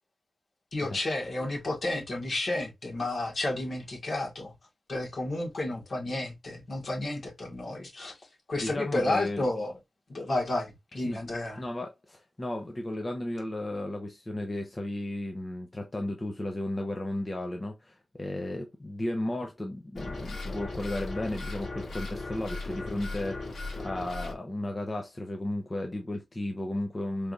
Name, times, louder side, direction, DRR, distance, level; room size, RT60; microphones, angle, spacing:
voice 1, 0.7-4.5 4.9-8.2 8.5-9.7 10.1-11.6, left 2 dB, 55° left, 1.7 m, -31 dB
voice 2, 8.6-9.4 11.1-11.2 11.6-27.3, left 1 dB, 25° left, 0.8 m, -34 dB
sound 1, 20.0-24.3, left 2 dB, 80° left, 2.7 m, -37 dB
4.6 x 3.4 x 2.5 m
wide cardioid pair, 95°, 0 cm